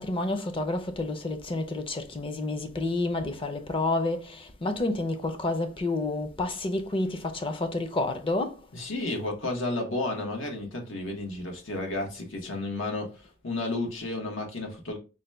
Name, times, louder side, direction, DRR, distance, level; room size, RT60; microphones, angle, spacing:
voice 1, 0.0-8.7, left 2 dB, 30° left, 0.5 m, -29 dB
voice 2, 8.7-15.0, left 2 dB, 85° left, 1.1 m, -32 dB
3.9 x 2.2 x 3.2 m
head